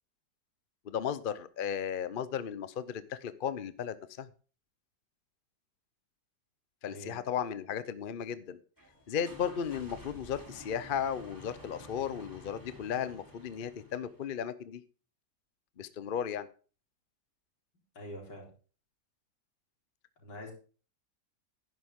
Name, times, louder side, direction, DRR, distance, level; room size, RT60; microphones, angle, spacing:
voice 1, 0.8-4.3 6.8-8.6 9.1-14.8 15.8-16.5, left 8 dB, 50° left, 14 dB, 0.6 m, -35 dB
voice 2, 6.9-7.2 17.9-18.5 20.2-20.5, left 1 dB, 80° left, -1 dB, 4.7 m, -45 dB
sound 1, 8.8-14.3, left 1 dB, 10° right, 3.0 m, -51 dB
11.0 x 10.5 x 3.7 m, 0.38 s
omnidirectional pair, 1.9 m